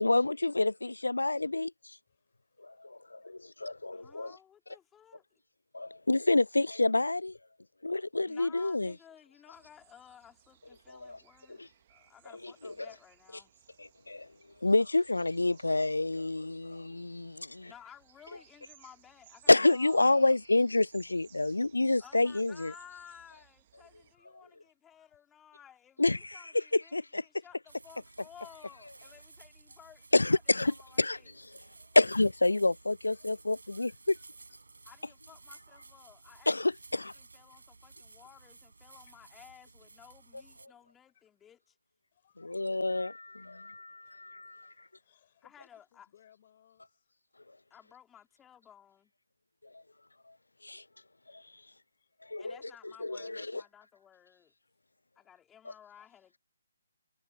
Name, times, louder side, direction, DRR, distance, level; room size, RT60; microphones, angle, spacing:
voice 1, 0.0-2.0 2.6-4.4 5.7-7.4 7.8-9.0 10.9-11.2 11.5-11.7 12.4-12.9 13.8-14.3 14.6-17.7 19.5-22.7 26.0-27.3 30.1-31.6 32.0-34.2 36.5-37.1 42.4-44.9 49.6-49.8 50.3-50.4 50.6-50.8 51.3-51.6 52.2-52.6 52.8-53.6 55.6-55.7, left 2 dB, 75° left, 0.4 m, -28 dB
voice 2, 2.1-4.2 6.6-6.7 12.0-12.2 14.2-14.7 17.4-17.9 21.1-22.1 23.8-25.2 27.5-27.6 29.7-30.1 31.6-32.0 33.1-34.4 34.9-35.1 37.9-38.0 38.8-39.2 40.8-41.2 42.1-42.8 44.0-44.1 44.4-47.2 50.0-50.2 50.6-51.3 51.6-52.4 55.7-55.8, left 10 dB, 35° left, 5.7 m, -71 dB
voice 3, 3.9-5.2 8.2-11.6 11.9-13.5 17.7-20.3 22.0-27.0 27.2-31.3 34.9-36.5 36.9-41.8 45.4-46.1 47.7-49.1 52.4-54.5 55.2-56.4, left 9 dB, 10° left, 3.8 m, -56 dB
sound 1, 9.5-24.1, right 12 dB, 35° right, 1.5 m, -62 dB
sound 2, 27.7-40.7, right 3 dB, 65° right, 5.4 m, -55 dB
figure-of-eight pair, 140°, 0 cm